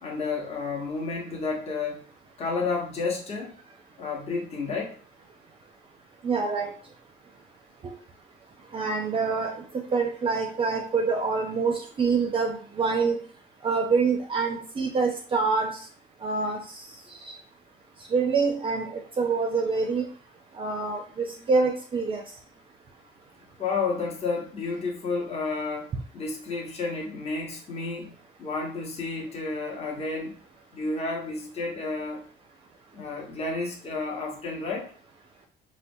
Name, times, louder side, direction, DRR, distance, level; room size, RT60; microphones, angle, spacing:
voice 1, 0.0-2.0 2.4-3.5 4.0-5.0 21.4-21.5 23.6-25.9 26.1-28.1 28.4-30.4 30.7-32.2 32.9-34.9, left 4 dB, 40° left, -1 dB, 0.9 m, -31 dB
voice 2, 6.2-6.7 7.8-7.9 8.7-13.2 13.6-15.8 16.2-16.8 17.2-17.3 18.1-20.1 20.5-22.2, right 4 dB, 30° right, 3 dB, 0.4 m, -26 dB
3.7 x 2.1 x 2.6 m, 0.42 s
cardioid pair, 110°, 17 cm